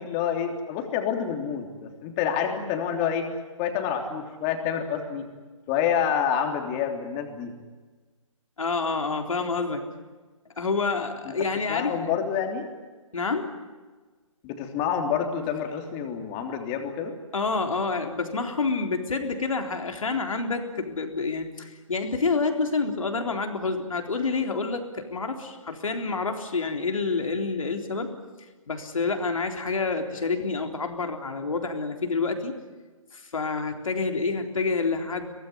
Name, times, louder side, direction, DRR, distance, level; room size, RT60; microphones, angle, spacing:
voice 1, 0.0-3.3 3.6-5.2 5.7-7.5 11.7-12.7 14.4-17.1, left 8 dB, 25° left, 4 dB, 3.3 m, -28 dB
voice 2, 8.6-9.9 10.6-12.1 13.1-13.5 17.3-28.1 28.7-32.5 33.1-35.3, left 4 dB, 80° left, 4 dB, 3.9 m, -28 dB
23.5 x 18.5 x 10.0 m, 1.3 s
hypercardioid pair, 150°, 17 cm